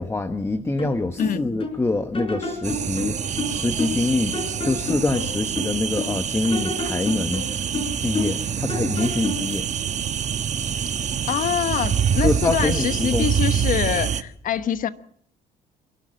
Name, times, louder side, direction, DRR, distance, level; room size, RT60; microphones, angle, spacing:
voice 1, 0.0-7.7 8.0-9.7 12.2-13.3, left 2 dB, 15° left, 1.1 m, -25 dB
sound 1, 0.8-1.8 2.1-4.1 4.3-6.2 6.5-8.4 8.7-9.5, left 2 dB, 30° left, 5.0 m, -30 dB
sound 2, 2.6-14.2, right 8 dB, 45° right, 1.2 m, -26 dB
voice 2, 11.3-14.9, left 9 dB, 55° left, 1.2 m, -25 dB
28.0 x 12.0 x 7.6 m
cardioid pair, 110°, 17 cm